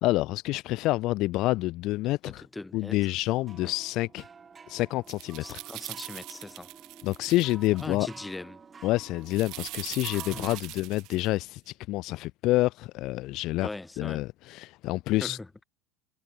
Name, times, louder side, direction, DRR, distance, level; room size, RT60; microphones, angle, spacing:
voice 1, 0.0-2.4 2.7-4.2 4.7-5.6 7.0-8.1 8.8-13.7 14.0-15.4, left 18 dB, 45° left, 0.4 m, -28 dB
voice 2, 2.2-3.0 3.6-3.7 5.4-6.7 7.8-8.6 10.3-10.5 13.6-14.2 15.2-15.6, left 2 dB, 5° left, 2.8 m, -40 dB
sound 1, 3.3-10.6, right 5 dB, 20° right, 4.4 m, -50 dB
sound 2, 5.1-7.9 9.3-11.3, right 20 dB, 50° right, 1.4 m, -42 dB
supercardioid pair, 150°, 0 cm